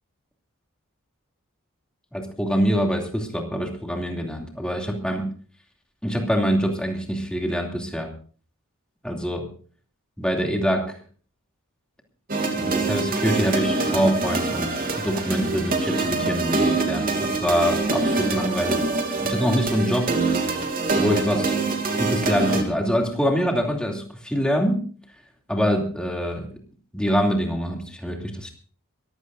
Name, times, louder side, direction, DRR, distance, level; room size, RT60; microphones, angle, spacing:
voice 1, 2.1-5.3 6.0-8.1 9.0-9.5 10.2-11.0 12.5-14.7 15.0-18.9 19.2-20.2 21.0-21.5 22.0-24.8 25.5-26.5 26.9-28.5, equal, 5° left, 1 dB, 2.7 m, -24 dB
sound 1, 12.3-22.6, right 3 dB, 40° right, 2.7 m, -25 dB
23.0 x 15.5 x 2.6 m, 0.41 s
head